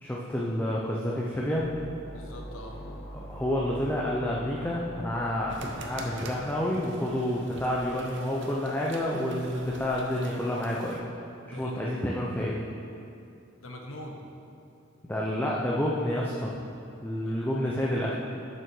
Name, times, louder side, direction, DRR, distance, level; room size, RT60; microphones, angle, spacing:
voice 1, 0.0-1.7 3.1-11.0 11.6-12.6 15.0-16.5 17.0-18.1, left 1 dB, 10° left, -4 dB, 0.6 m, -29 dB
sound 1, 1.5-8.0, equal, 35° left, 1.2 m, -45 dB
voice 2, 2.1-2.8 11.5-11.9 13.6-14.2 17.2-17.8, left 1 dB, 80° left, 1 dB, 1.0 m, -43 dB
sound 2, 5.5-11.0, right 3 dB, 60° right, 0.7 m, -45 dB
7.4 x 5.6 x 6.1 m, 2.6 s
head